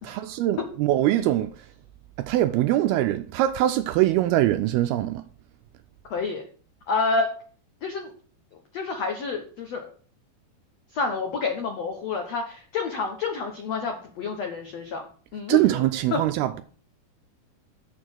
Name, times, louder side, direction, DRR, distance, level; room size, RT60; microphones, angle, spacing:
voice 1, 0.0-1.5 2.3-5.2 15.5-16.6, right 14 dB, 80° right, 2.3 m, -22 dB
voice 2, 6.1-6.4 6.9-7.3 7.8-8.1 8.7-9.9 10.9-15.0 15.3-15.8 16.1-16.2, left 4 dB, 80° left, 1.4 m, -28 dB
7.0 x 6.3 x 7.7 m
omnidirectional pair, 4.8 m